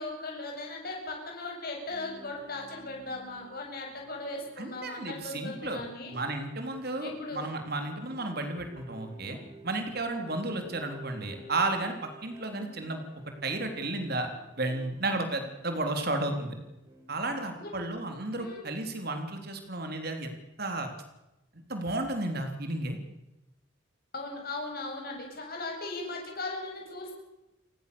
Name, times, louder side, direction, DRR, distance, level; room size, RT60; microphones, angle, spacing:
voice 1, 0.0-6.2 7.0-7.4 17.5-17.7 18.3-18.6 24.1-27.2, left 2 dB, 45° left, 0 dB, 8.0 m, -38 dB
sound 1, 1.9-18.1 19.7-19.8, right 2 dB, 15° right, 5.5 m, -53 dB
voice 2, 4.6-5.8 6.1-9.4 9.6-13.0 13.4-14.3 14.6-16.6 17.1-20.3 20.6-20.9 21.5-23.0, right 2 dB, 50° right, 5 dB, 3.6 m, -33 dB
30.0 x 16.5 x 7.0 m, 0.95 s
head